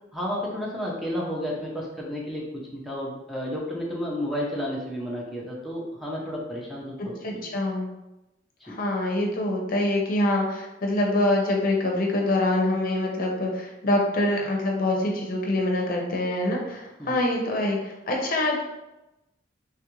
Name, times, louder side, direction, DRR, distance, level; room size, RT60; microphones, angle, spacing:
voice 1, 0.1-7.5 8.6-8.8 17.0-17.2, equal, ahead, -4 dB, 0.5 m, -32 dB
voice 2, 7.2-7.9 8.6-18.6, left 1 dB, 50° left, 0 dB, 0.6 m, -25 dB
3.3 x 2.4 x 2.9 m, 0.96 s
head